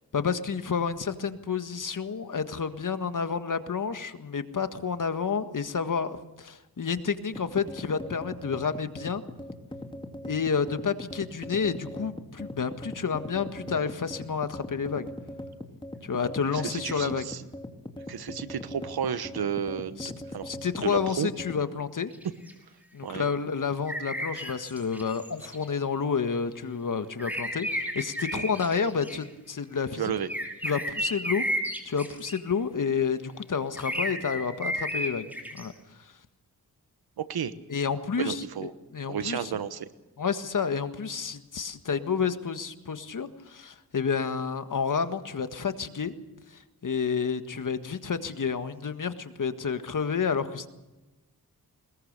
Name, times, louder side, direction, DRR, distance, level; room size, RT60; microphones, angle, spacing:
voice 1, 0.1-9.2 10.2-15.1 16.0-17.3 20.0-20.1 20.4-22.1 22.9-30.1 30.6-31.4 31.9-35.3 35.6-35.7 36.0-36.1 37.7-39.5 40.2-46.1 46.5-50.7, left 6 dB, 55° left, 9 dB, 1.7 m, -30 dB
sound 1, 7.3-21.6, left 1 dB, 15° left, 2.9 m, -41 dB
voice 2, 16.5-17.4 18.1-20.0 20.3-20.5 20.8-21.3 23.0-23.3 28.3-28.4 30.0-30.3 37.2-37.5 38.2-38.7 39.1-39.9, right 8 dB, 85° right, 13 dB, 1.2 m, -32 dB
sound 2, 22.1-22.5 23.9-25.8 27.2-29.2 30.3-32.4 33.8-35.7, equal, 5° right, 5.4 m, -32 dB
21.5 x 20.5 x 6.7 m, 1.1 s
cardioid pair, 55°, 36 cm